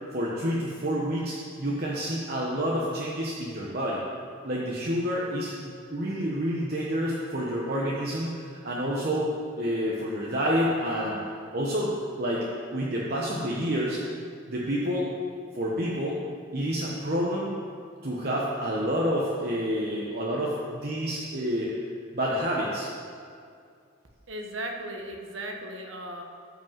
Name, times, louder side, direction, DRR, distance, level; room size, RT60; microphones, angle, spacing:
voice 1, 0.1-4.0 4.4-5.5 5.9-11.2 11.5-12.5 12.7-14.0 14.5-15.1 15.5-16.2 16.5-17.5 18.0-21.7 22.1-22.9, equal, 45° right, -5 dB, 1.1 m, -28 dB
voice 2, 24.3-26.2, right 1 dB, 70° right, 2 dB, 1.3 m, -36 dB
13.0 x 5.3 x 7.5 m, 2.3 s
head